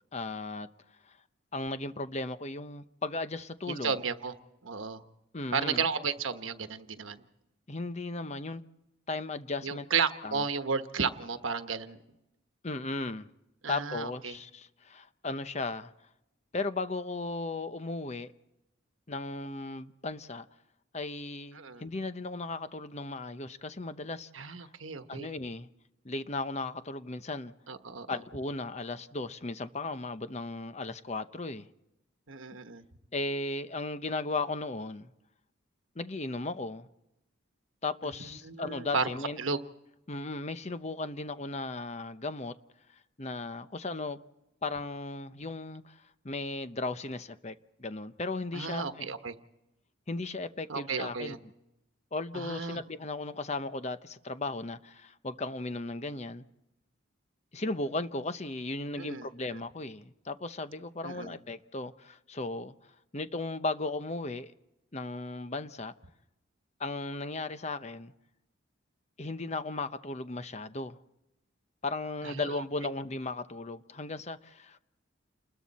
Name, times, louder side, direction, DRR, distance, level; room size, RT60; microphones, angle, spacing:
voice 1, 0.1-0.7 1.1-1.2 1.5-3.9 5.3-5.8 7.7-8.6 9.1-9.9 10.2-10.4 12.6-13.3 13.7-15.9 16.5-18.3 19.1-20.4 20.9-24.7 25.1-25.7 26.0-27.5 28.1-31.7 33.1-35.1 36.0-36.9 37.8-39.4 40.1-42.5 43.2-44.2 44.6-49.2 50.1-51.4 52.1-56.4 57.5-62.7 63.1-64.5 64.9-65.9 66.8-68.1 69.2-71.0 71.8-74.8, left 2 dB, 35° left, 0.8 m, -36 dB
voice 2, 3.7-4.3 4.6-5.0 5.5-7.2 9.6-12.0 13.6-14.3 21.5-21.8 24.3-25.3 27.7-28.2 32.3-32.8 38.4-39.1 39.4-39.6 48.5-49.3 50.7-51.4 52.3-52.8 59.0-59.3 59.5-59.6 61.0-61.3 72.2-72.6, right 5 dB, 80° right, 1.2 m, -33 dB
29.5 x 21.0 x 4.2 m
head